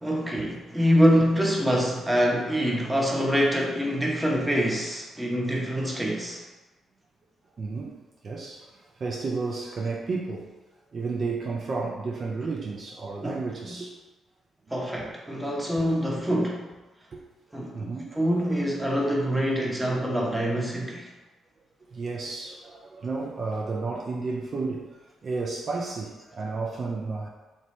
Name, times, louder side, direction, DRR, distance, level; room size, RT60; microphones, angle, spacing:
voice 1, 0.0-6.4 13.2-13.7 14.7-16.6 17.5-17.9 18.1-21.0, equal, 10° right, -2 dB, 0.9 m, -25 dB
voice 2, 7.6-8.7 9.0-10.5 10.9-13.9 17.1-17.2 17.7-18.2 21.9-25.0 25.2-27.3, right 3 dB, 50° right, -2 dB, 0.4 m, -32 dB
3.2 x 2.7 x 3.1 m, 1.1 s
hypercardioid pair, 45°, 0 cm